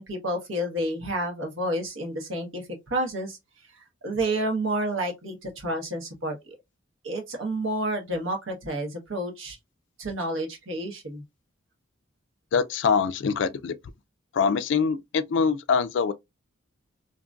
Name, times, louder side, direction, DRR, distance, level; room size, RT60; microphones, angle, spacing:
voice 1, 0.0-3.4 4.0-6.4 7.0-9.6 10.0-11.2, right 1 dB, 75° right, 1.0 m, -30 dB
voice 2, 12.5-13.8 14.3-16.1, left 5 dB, 60° left, 0.3 m, -24 dB
2.8 x 2.5 x 2.2 m
head